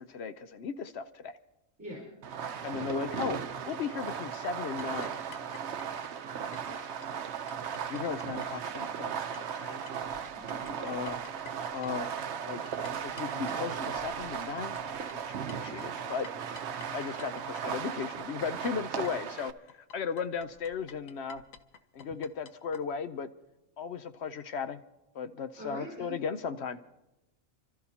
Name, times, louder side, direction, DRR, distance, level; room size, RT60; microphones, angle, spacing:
voice 1, 0.0-1.3 2.6-3.4 3.7-5.2 6.6-6.8 7.8-9.8 10.8-11.2 11.7-12.1 12.5-12.7 13.0-16.3 16.9-21.4 21.9-23.3 23.8-24.8 25.1-26.8, left 6 dB, 60° left, 11 dB, 0.9 m, -36 dB
Fireworks, 2.2-19.5, right 7 dB, 60° right, 0.9 m, -37 dB
sound 1, 4.8-9.6 9.9-22.8, left 6 dB, 85° left, 1.2 m, -52 dB
voice 2, 10.3-11.0 25.6-26.1, right 1 dB, 20° right, -3 dB, 4.7 m, -43 dB
29.5 x 13.5 x 2.8 m, 0.93 s
omnidirectional pair, 1.4 m